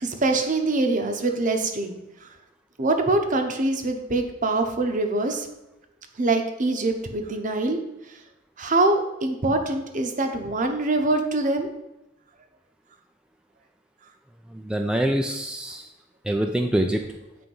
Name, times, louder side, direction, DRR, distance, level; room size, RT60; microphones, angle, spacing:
voice 1, 0.0-2.0 2.8-5.5 6.2-7.8 8.6-11.7, right 2 dB, 45° right, 5 dB, 0.8 m, -24 dB
voice 2, 14.5-15.9 16.2-17.0, right 1 dB, 5° right, 3 dB, 0.3 m, -25 dB
7.7 x 3.4 x 5.3 m, 0.93 s
head